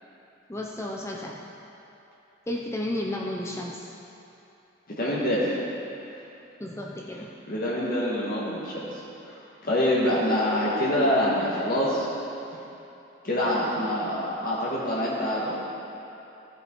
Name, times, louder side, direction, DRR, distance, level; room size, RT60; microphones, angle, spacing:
voice 1, 0.5-1.4 2.5-3.9 6.6-7.3, left 1 dB, 15° left, -1 dB, 0.6 m, -32 dB
voice 2, 5.0-5.5 7.5-9.0 9.3-12.1 13.2-15.6, left 1 dB, 50° left, -7 dB, 1.6 m, -25 dB
15.0 x 7.7 x 4.5 m, 2.9 s
head